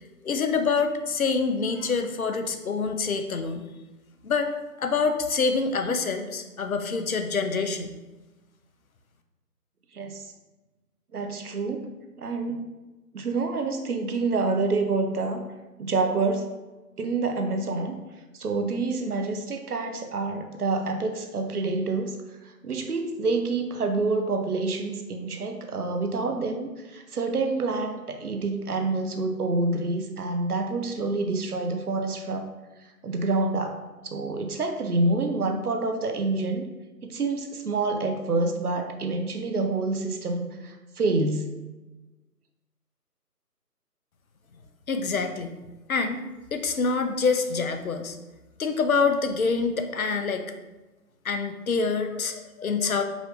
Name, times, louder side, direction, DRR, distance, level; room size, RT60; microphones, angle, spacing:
voice 1, 0.2-3.7 4.2-4.5 4.8-7.9 44.9-45.5 45.9-46.2 46.5-48.2 48.6-50.5 51.2-53.0, left 4 dB, 60° left, 6 dB, 0.6 m, -26 dB
voice 2, 9.9-10.3 11.1-11.9 12.2-12.6 13.1-15.4 15.8-16.5 17.0-18.0 18.3-22.2 22.4-32.5 33.0-36.7 37.0-41.5, right 3 dB, 70° right, 5 dB, 0.7 m, -27 dB
4.8 x 2.6 x 3.4 m, 1.1 s
figure-of-eight pair, 155°, 48 cm